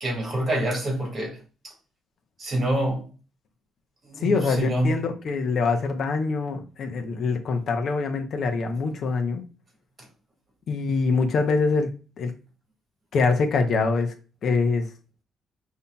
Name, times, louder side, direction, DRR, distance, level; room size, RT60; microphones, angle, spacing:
voice 1, 0.0-1.7 2.4-3.1 4.0-5.0, right 1 dB, 35° right, 1.6 m, -26 dB
voice 2, 4.2-9.4 10.7-11.9 12.2-12.3 13.1-14.1 14.4-14.9, left 4 dB, 55° left, 0.6 m, -24 dB
5.3 x 2.7 x 2.2 m
cardioid pair, 125°, 0 cm